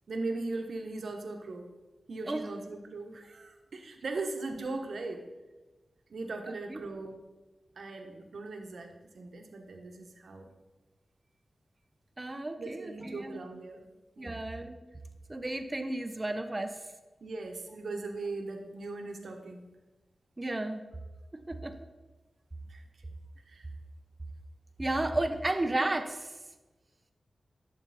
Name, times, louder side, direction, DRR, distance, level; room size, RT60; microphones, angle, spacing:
voice 1, 0.1-1.7 2.1-5.3 6.1-7.2 7.8-10.5 12.6-13.9 14.2-14.4 17.2-19.7 22.7-22.8 23.5-23.7, right 3 dB, 75° right, 4 dB, 1.3 m, -39 dB
voice 2, 6.4-6.8 12.2-13.4 14.2-14.8 15.3-16.8 20.4-20.8 21.5-21.8 24.8-26.3, right 2 dB, 30° right, 8 dB, 1.0 m, -33 dB
12.0 x 6.9 x 4.3 m, 1.2 s
cardioid pair, 55°, 0 cm